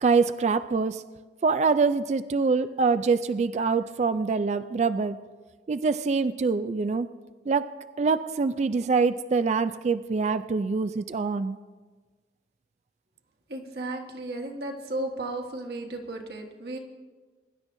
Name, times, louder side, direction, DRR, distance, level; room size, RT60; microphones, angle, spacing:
voice 1, 0.0-1.0 1.4-5.2 5.7-7.1 7.5-7.7 8.0-11.6, right 4 dB, 40° right, 12 dB, 0.3 m, -25 dB
voice 2, 13.5-16.8, right 2 dB, 60° right, 2 dB, 1.5 m, -34 dB
22.5 x 11.5 x 2.6 m, 1.4 s
head